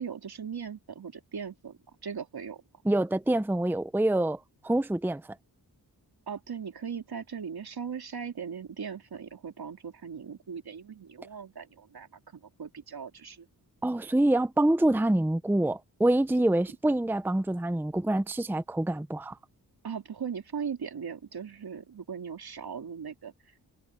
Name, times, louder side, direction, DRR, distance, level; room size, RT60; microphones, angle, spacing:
voice 1, 0.0-2.6 6.3-13.5 19.8-23.3, right 6 dB, 70° right, 3.5 m, -39 dB
voice 2, 2.8-5.2 13.8-19.4, right 1 dB, 5° right, 0.7 m, -26 dB
wide cardioid pair, 75°, 39 cm